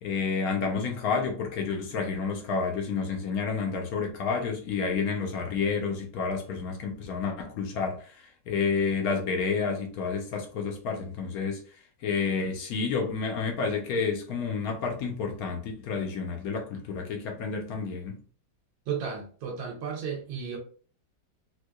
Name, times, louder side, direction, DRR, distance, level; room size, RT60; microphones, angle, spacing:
voice 1, 0.0-8.1 8.5-11.6 12.0-18.2, left 5 dB, 65° left, 0.9 m, -30 dB
voice 2, 18.9-20.6, right 6 dB, 75° right, 1.4 m, -33 dB
4.5 x 2.2 x 2.2 m
omnidirectional pair, 2.0 m